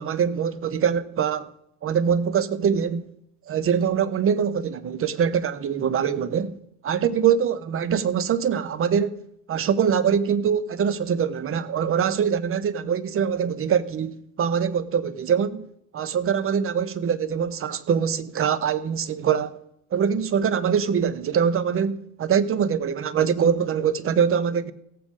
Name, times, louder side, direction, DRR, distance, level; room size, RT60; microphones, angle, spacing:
voice 1, 0.0-1.5 1.8-3.1 3.5-6.6 6.8-9.2 9.5-15.7 15.9-19.6 19.9-24.7, right 7 dB, 35° right, 1.0 m, -23 dB
17.0 x 7.4 x 5.0 m
hypercardioid pair, 75°, 37 cm